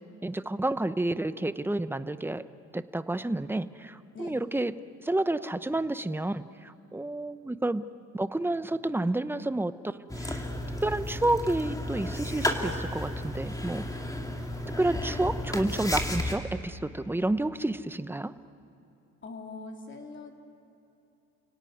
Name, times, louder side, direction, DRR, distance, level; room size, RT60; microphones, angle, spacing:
voice 1, 0.2-2.4 2.7-4.7 5.0-7.9 8.1-10.4 10.8-13.8 14.8-18.3, right 2 dB, 5° right, 13 dB, 0.8 m, -30 dB
sound 1, 10.1-16.4, left 1 dB, 10° left, 2.8 m, -33 dB
voice 2, 19.2-20.4, left 3 dB, 40° left, 2 dB, 3.5 m, -42 dB
30.0 x 17.5 x 9.4 m, 2.7 s
cardioid pair, 90°, 30 cm